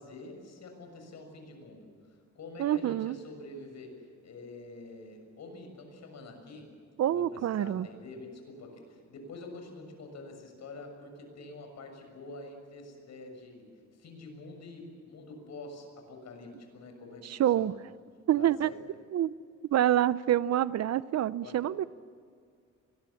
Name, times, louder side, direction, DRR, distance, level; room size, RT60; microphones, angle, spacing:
voice 1, 0.0-6.7 7.1-13.7 14.0-17.7 18.4-18.8 21.4-21.8, left 2 dB, 60° left, 6.7 m, -47 dB
voice 2, 2.6-3.2 7.0-7.9 17.3-17.7 18.3-18.7 19.1-19.3 19.7-21.8, right 11 dB, 60° right, 0.7 m, -26 dB
24.0 x 21.0 x 7.2 m
cardioid pair, 90°, 30 cm